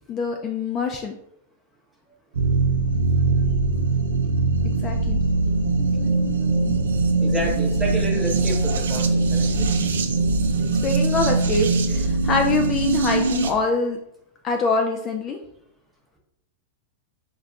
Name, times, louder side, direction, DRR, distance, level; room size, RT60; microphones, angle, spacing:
voice 1, 0.1-1.1 4.6-5.2 5.8-6.6 10.8-14.0 14.4-15.4, left 3 dB, 30° left, 3 dB, 0.3 m, -25 dB
sound 1, 2.4-13.5, right 3 dB, 85° right, 0.4 m, -21 dB
voice 2, 7.2-9.7, right 1 dB, 5° right, -1 dB, 0.7 m, -29 dB
2.3 x 2.2 x 3.8 m, 0.76 s
hypercardioid pair, 120°, 0 cm